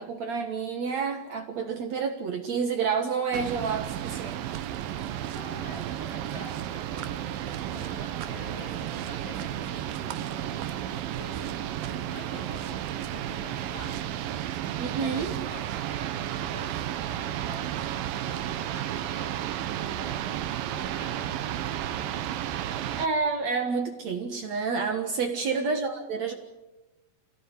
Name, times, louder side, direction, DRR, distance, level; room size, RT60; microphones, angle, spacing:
voice 1, 0.0-4.6 14.8-15.3 23.0-26.3, right 5 dB, 60° right, 6 dB, 2.5 m, -29 dB
sound 1, 3.3-23.1, right 11 dB, 90° right, 2.8 m, -33 dB
voice 2, 5.3-13.9 15.0-20.2 20.7-22.2 25.3-25.6, left 1 dB, 45° left, -1 dB, 9.2 m, -46 dB
27.5 x 17.5 x 9.8 m, 1.0 s
omnidirectional pair, 4.0 m